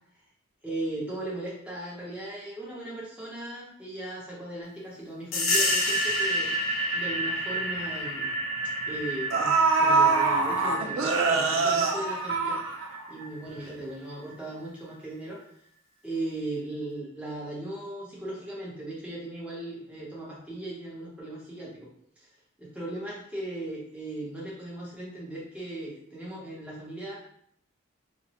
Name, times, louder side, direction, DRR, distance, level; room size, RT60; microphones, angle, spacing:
voice 1, 0.6-6.5 6.9-8.3 8.9-12.6 13.1-15.4 16.0-21.9 22.2-22.3 22.6-27.1, right 1 dB, 5° right, -6 dB, 0.8 m, -37 dB
sound 1, 5.3-13.6, equal, 75° left, 0.6 m, -30 dB
sound 2, 7.1-7.2 7.6-7.8 8.8-8.9 9.3-13.2 13.6-13.7, right 4 dB, 75° right, 0.4 m, -24 dB
2.9 x 2.1 x 2.8 m, 0.67 s
head